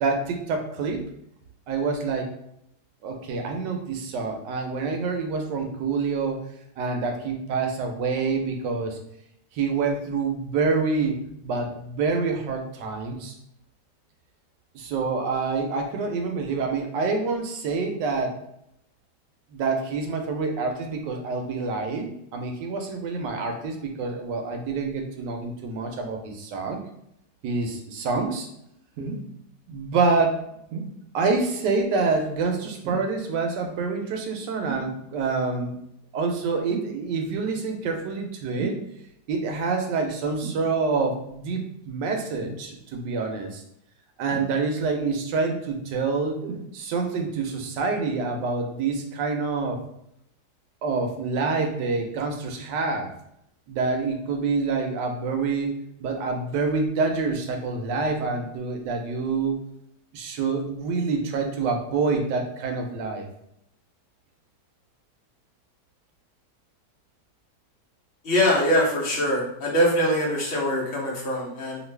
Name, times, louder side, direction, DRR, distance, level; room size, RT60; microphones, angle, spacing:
voice 1, 0.0-1.0 1.7-2.3 3.0-6.4 6.8-9.0 9.5-13.3 14.7-18.4 19.5-26.8 27.4-28.5 29.7-30.5 31.1-35.7 36.1-38.8 39.3-43.6 44.2-46.5 46.7-49.8 50.8-53.1 53.7-55.7 56.0-59.6 60.1-63.3, right 4 dB, 85° right, 4 dB, 1.2 m, -27 dB
sound 1, 29.0-29.3 30.7-31.0 32.8-33.2 34.7-34.9 36.7-37.0 38.6-38.9 40.4-40.7 42.4-42.6 44.3-44.9 46.4-46.7 47.5-47.6, right 3 dB, 70° right, 0.9 m, -34 dB
voice 2, 68.2-71.8, equal, 45° left, -4 dB, 0.9 m, -23 dB
3.0 x 2.5 x 3.2 m, 0.77 s
omnidirectional pair, 1.8 m